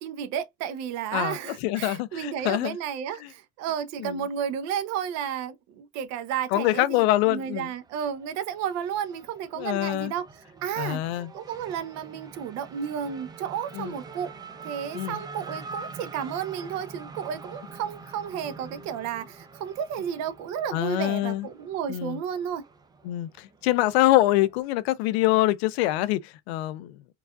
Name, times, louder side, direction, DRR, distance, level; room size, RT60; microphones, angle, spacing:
voice 1, 0.0-14.3 14.6-22.6, right 8 dB, 60° right, 0.8 m, -32 dB
voice 2, 1.6-2.8 4.0-4.2 6.5-7.7 9.6-10.1 10.8-11.3 13.7-13.9 14.9-15.2 20.7-21.5 21.9-22.2 23.0-26.9, left 16 dB, 90° left, 0.5 m, -25 dB
Race car auto racing / Accelerating revving vroom, 7.7-24.6, right 4 dB, 15° right, 0.4 m, -45 dB
4.7 x 2.4 x 2.3 m
supercardioid pair, 125°, 31 cm